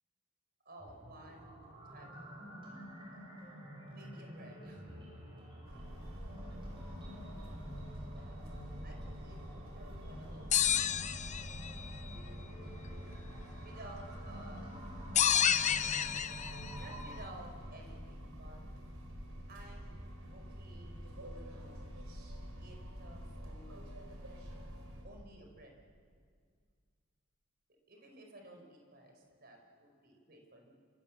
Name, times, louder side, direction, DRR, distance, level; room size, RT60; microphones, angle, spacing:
voice 1, 0.6-1.6 1.9-2.7 3.9-4.9 8.1-8.4 8.8-10.6 13.6-14.8 15.5-16.3 16.8-18.6 19.5-19.9 20.3-21.9 22.6-23.8 25.0-25.7 27.9-30.7, right 1 dB, 45° right, 2 dB, 4.5 m, -55 dB
sound 1, 0.8-17.2, equal, 25° right, 7.2 m, -50 dB
sound 2, 5.7-25.0, equal, 75° right, 4.7 m, -47 dB
sound 3, 10.5-11.8 15.2-16.7, left 9 dB, 35° left, 0.6 m, -30 dB
25.5 x 25.0 x 7.3 m, 2.1 s
head